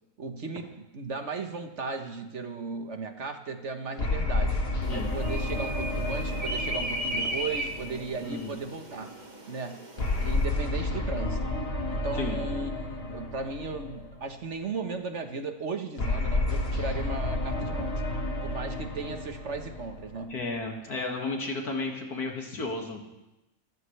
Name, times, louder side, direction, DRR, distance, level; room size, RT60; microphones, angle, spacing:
voice 1, 0.2-0.7 0.9-4.6 4.9-9.1 9.5-9.9 10.1-11.5 11.9-17.9 18.4-20.3, right 4 dB, 55° right, 6 dB, 1.5 m, -36 dB
sound 1, 4.0-8.6 10.0-14.4 16.0-20.5, left 2 dB, 40° left, 1.9 m, -31 dB
sound 2, 4.8-10.5, right 1 dB, 30° right, 1.9 m, -36 dB
voice 2, 8.2-8.5 12.1-12.4 17.6-17.7 20.3-23.0, left 3 dB, 85° left, 1 dB, 2.7 m, -33 dB
26.0 x 14.0 x 3.4 m, 0.97 s
omnidirectional pair, 1.6 m